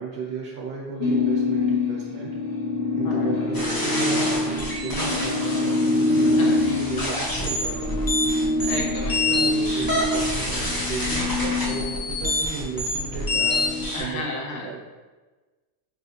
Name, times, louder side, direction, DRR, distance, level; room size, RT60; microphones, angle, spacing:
voice 1, 0.0-2.3 3.0-8.1 9.1-13.7 13.9-14.8, right 5 dB, 55° right, -3 dB, 0.9 m, -35 dB
sound 1, 1.0-12.4 12.8-13.9, left 2 dB, 50° left, 0.9 m, -25 dB
voice 2, 3.0-3.4 6.4-6.6 8.6-9.2 13.9-14.7, left 2 dB, 75° left, 0 dB, 1.1 m, -32 dB
sound 2, 3.5-14.0, left 1 dB, 35° left, 0.3 m, -27 dB
4.2 x 3.1 x 2.8 m, 1.3 s
omnidirectional pair, 1.3 m